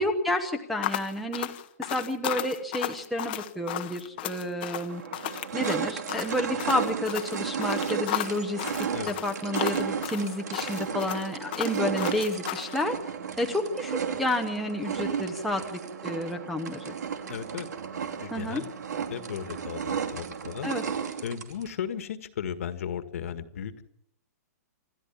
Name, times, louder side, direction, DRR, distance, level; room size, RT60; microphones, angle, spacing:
voice 1, 0.0-1.5 1.9-5.0 5.5-13.0 13.4-16.9 18.3-18.6 20.6-20.8, left 1 dB, ahead, 1 dB, 1.0 m, -30 dB
sound 1, 0.8-12.8, left 14 dB, 35° left, 1.1 m, -34 dB
sound 2, 4.3-4.4 4.9-21.7, right 7 dB, 85° right, 2.8 m, -33 dB
voice 2, 17.3-17.7 18.2-18.7 19.1-20.7 21.2-23.8, left 8 dB, 55° left, 10 dB, 1.7 m, -35 dB
27.5 x 13.0 x 7.2 m, 0.73 s
hypercardioid pair, 170°, 9 cm